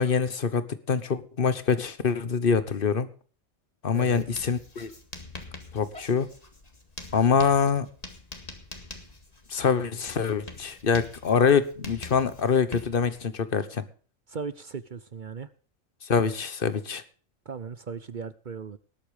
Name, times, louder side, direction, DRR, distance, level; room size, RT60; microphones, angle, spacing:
voice 1, 0.0-3.1 3.8-4.9 5.7-6.3 7.1-7.9 9.5-13.8 16.1-17.0, left 6 dB, 45° left, 14 dB, 1.3 m, -25 dB
Writing, 3.9-13.2, left 2 dB, 30° left, 2.1 m, -45 dB
voice 2, 14.3-15.5 17.5-18.8, right 5 dB, 45° right, 15 dB, 0.7 m, -37 dB
19.0 x 8.5 x 5.0 m, 0.42 s
omnidirectional pair, 1.3 m